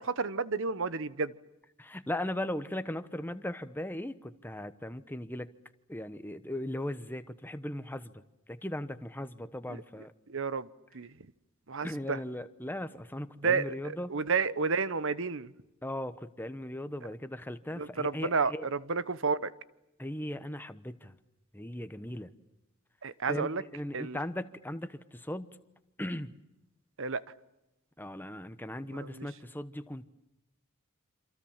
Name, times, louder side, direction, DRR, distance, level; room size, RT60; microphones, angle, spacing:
voice 1, 0.0-1.3 10.3-10.7 10.9-11.1 11.7-12.2 13.4-15.5 17.8-19.5 23.0-23.6 23.9-24.2 27.0-27.2 28.9-29.3, right 4 dB, 60° right, 16 dB, 1.0 m, -31 dB
voice 2, 1.8-5.5 5.9-8.2 8.5-10.1 11.8-14.1 15.8-18.7 20.0-21.1 21.5-22.3 23.3-25.5 26.0-26.3 28.0-30.1, left 1 dB, 10° left, 11 dB, 1.1 m, -38 dB
28.0 x 26.5 x 7.4 m, 0.93 s
head